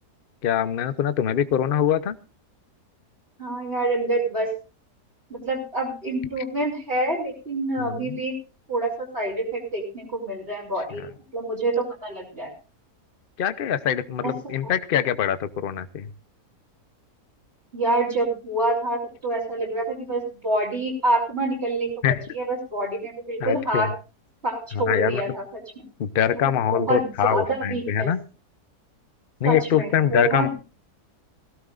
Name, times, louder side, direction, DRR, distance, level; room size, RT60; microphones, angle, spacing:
voice 1, 0.4-2.2 7.8-8.2 11.0-11.1 13.4-16.1 22.0-22.2 23.4-23.9 24.7-25.2 26.0-28.2 29.4-30.5, left 9 dB, 45° left, 13 dB, 0.8 m, -23 dB
voice 2, 3.4-4.5 5.3-8.3 8.7-11.1 11.3-12.5 14.2-14.5 17.7-22.1 22.3-23.9 24.4-25.6 26.5-28.1 29.4-30.5, right 2 dB, 35° right, -5 dB, 4.0 m, -27 dB
19.0 x 16.5 x 2.5 m, 0.31 s
omnidirectional pair, 1.7 m